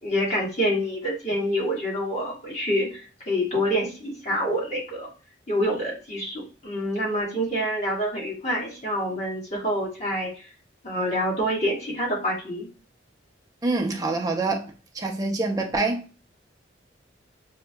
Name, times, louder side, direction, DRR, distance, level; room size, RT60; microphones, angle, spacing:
voice 1, 0.0-5.1 5.5-10.3 10.8-12.7, equal, 35° left, 1.5 m, -27 dB
voice 2, 13.6-16.1, right 3 dB, 20° right, 0.6 m, -26 dB
5.2 x 2.7 x 2.2 m
head